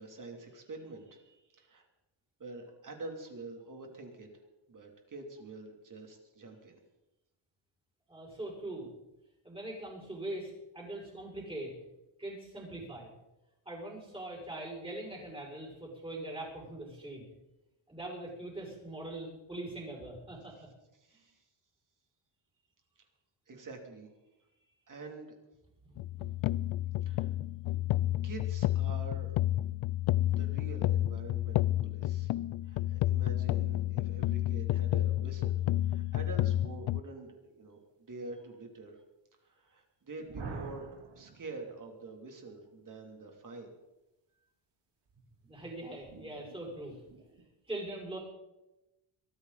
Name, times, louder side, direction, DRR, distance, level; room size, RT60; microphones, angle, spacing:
voice 1, 0.0-1.9 2.4-4.3 4.7-6.8 21.0-21.4 23.0-23.1 23.5-24.1 24.6-25.4 27.0-27.3 28.2-29.4 30.3-32.3 32.6-39.0 39.4-43.7 44.4-44.5, right 3 dB, 40° right, 3 dB, 3.0 m, -46 dB
voice 2, 8.1-8.9 9.4-11.7 12.2-13.1 13.6-17.2 17.9-20.7 21.1-21.2 25.9-26.3 45.4-47.0 47.7-48.2, right 1 dB, 10° right, -2 dB, 6.0 m, -42 dB
sound 1, 26.0-37.0, left 14 dB, 70° left, 0.5 m, -30 dB
sound 2, 40.2-42.1 45.1-47.4, right 4 dB, 55° right, 3.2 m, -48 dB
23.0 x 14.0 x 4.1 m, 0.97 s
wide cardioid pair, 140°, 50 cm